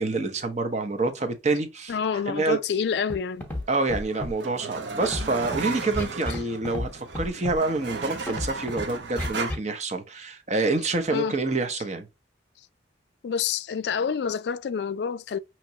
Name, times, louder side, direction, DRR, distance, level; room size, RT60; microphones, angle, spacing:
voice 1, 0.0-2.0 2.3-2.6 3.7-12.1, right 3 dB, 40° right, 0.7 m, -27 dB
voice 2, 1.9-3.5 11.1-11.3 13.2-15.4, left 6 dB, 65° left, 0.3 m, -27 dB
Scratching (performance technique), 3.1-3.2 3.4-3.6 3.9-4.3 5.0-5.6 5.9-6.4 6.6-6.9 7.1-7.6 8.3-8.8 9.2-9.6, left 1 dB, 10° left, 1.0 m, -30 dB
sound 1, 3.6-9.5, right 4 dB, 70° right, 0.8 m, -35 dB
5.8 x 3.0 x 2.7 m
head